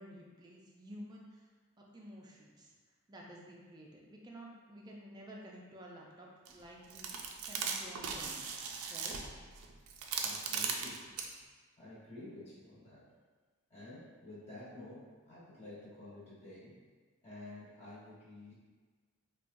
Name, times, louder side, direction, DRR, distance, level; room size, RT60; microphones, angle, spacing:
voice 1, 0.0-1.5 1.8-2.7 3.1-9.2, equal, 20° right, -2 dB, 0.4 m, -52 dB
sound 1, 6.5-6.6 6.9-11.3, right 5 dB, 90° right, 0.4 m, -38 dB
voice 2, 10.2-11.1 11.8-13.0 13.7-16.8 17.2-18.5, left 2 dB, 30° left, -9 dB, 1.2 m, -50 dB
4.4 x 2.2 x 2.5 m, 1.4 s
head